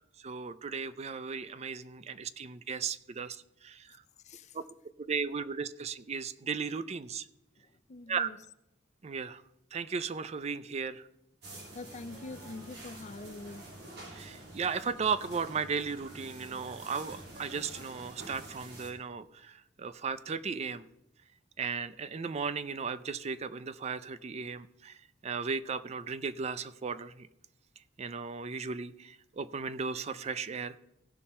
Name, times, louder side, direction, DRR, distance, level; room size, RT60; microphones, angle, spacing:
voice 1, 0.2-4.0 4.5-4.6 5.0-7.3 8.1-8.3 9.0-9.4 9.7-11.1 14.0-20.9 21.6-27.3 28.0-30.8, right 5 dB, 35° right, 0.4 m, -36 dB
voice 2, 7.9-8.4 11.7-13.6, left 3 dB, 35° left, 0.4 m, -44 dB
sound 1, 11.4-18.9, right 2 dB, 60° right, 3.1 m, -48 dB
16.5 x 5.6 x 4.2 m
head